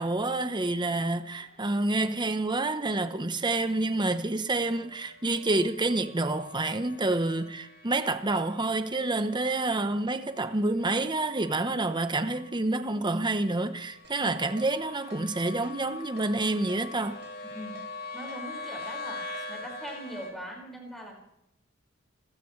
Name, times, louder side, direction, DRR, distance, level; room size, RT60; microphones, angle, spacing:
voice 1, 0.0-17.2, right 2 dB, 20° right, 1.0 m, -28 dB
sound 1, 0.7-20.3, left 3 dB, 50° left, 4.8 m, -45 dB
Keyboard (musical), 14.0-14.2 14.6-14.7 15.1-15.2 15.6-15.8 16.2-16.3 16.7-16.8 17.2-17.4 17.8-17.9 18.3-18.4 18.8-18.9 19.3-19.5 19.9-20.0, right 3 dB, 55° right, 1.4 m, -49 dB
voice 2, 17.4-17.8 18.1-21.1, equal, ahead, 5.3 m, -41 dB
29.5 x 14.5 x 3.3 m
head